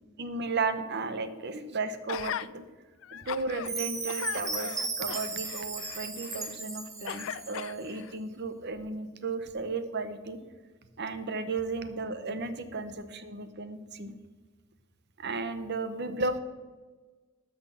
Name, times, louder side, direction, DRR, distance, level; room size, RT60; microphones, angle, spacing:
voice 1, 0.2-2.6 3.1-10.4 11.0-14.1 15.2-16.4, right 3 dB, 55° right, 11 dB, 0.9 m, -34 dB
Gasp, 2.1-2.5 3.0-3.7 4.1-6.6 7.1-8.1 8.8-8.9, left 9 dB, 70° left, 0.4 m, -39 dB
Chime, 3.6-7.7, right 4 dB, 15° right, 1.2 m, -36 dB
12.5 x 6.1 x 5.7 m, 1.3 s
head